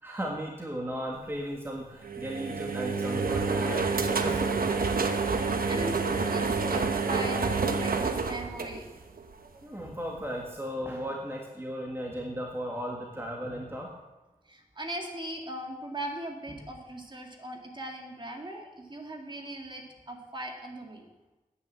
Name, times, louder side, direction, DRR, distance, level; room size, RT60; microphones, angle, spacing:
voice 1, 0.0-4.6 9.6-14.0, equal, 15° right, 0 dB, 1.7 m, -36 dB
washing machine, 2.0-9.3, right 4 dB, 75° right, 1.0 m, -28 dB
voice 2, 5.3-8.9 9.4-9.6 14.5-21.1, right 1 dB, 30° right, 2 dB, 2.1 m, -39 dB
9.6 x 9.3 x 7.5 m, 1.1 s
wide cardioid pair, 80°, 15 cm